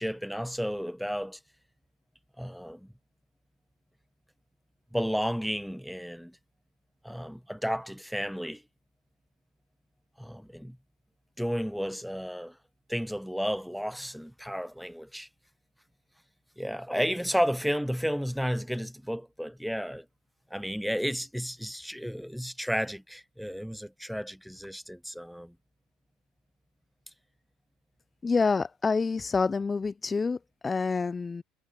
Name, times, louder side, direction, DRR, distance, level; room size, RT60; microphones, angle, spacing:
voice 1, 0.0-1.4 2.4-2.9 4.9-6.4 7.0-8.6 10.2-10.8 11.4-12.6 12.9-15.3 16.6-20.1 20.5-25.5, equal, ahead, 1.0 m, -32 dB
voice 2, 28.2-31.4, left 4 dB, 25° left, 0.5 m, -27 dB
hypercardioid pair, 80°, 0 cm